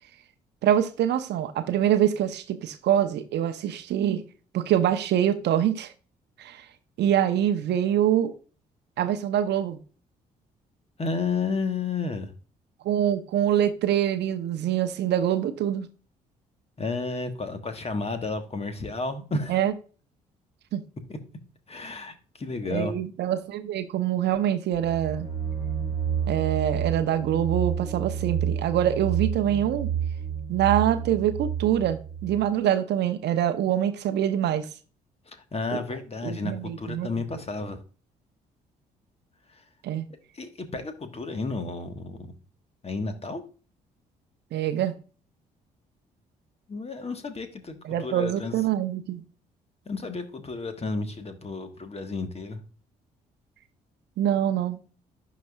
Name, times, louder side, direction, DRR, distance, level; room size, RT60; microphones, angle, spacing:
voice 1, 0.6-4.2 4.5-5.9 6.4-6.6 7.0-8.3 9.0-9.8 12.8-15.9 19.5-19.7 20.7-20.8 22.7-25.3 26.3-29.9 30.5-34.7 36.2-37.1 39.8-40.1 44.5-44.9 47.8-49.2 54.2-54.8, right 10 dB, 60° right, 0.7 m, -25 dB
voice 2, 11.0-12.3 16.8-19.6 21.1-21.2 21.7-22.9 35.3-37.8 40.3-42.3 42.8-43.4 46.7-48.5 49.9-52.6, left 3 dB, 30° left, 1.4 m, -32 dB
sound 1, 24.7-32.4, right 8 dB, 65° left, 3.2 m, -30 dB
11.5 x 4.1 x 2.3 m
hypercardioid pair, 45°, 20 cm